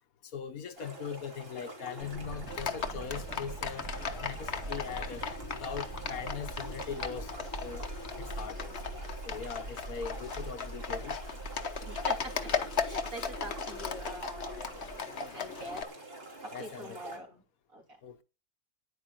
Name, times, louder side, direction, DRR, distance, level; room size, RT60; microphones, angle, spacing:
voice 1, 0.2-3.9 4.2-7.9 8.2-8.8 9.2-11.2 16.5-17.2 18.0-18.2, left 7 dB, 65° left, 1.3 m, -41 dB
sound 1, 0.8-17.2, right 1 dB, 40° right, 2.9 m, -46 dB
sound 2, 2.0-15.0, right 2 dB, 80° right, 3.5 m, -44 dB
Livestock farm animals working animals, 2.5-15.8, left 6 dB, 45° left, 1.3 m, -37 dB
voice 2, 11.8-14.9 15.3-15.9 16.4-17.4 17.7-18.0, right 1 dB, 60° right, 3.8 m, -44 dB
9.9 x 8.7 x 7.7 m
omnidirectional pair, 1.6 m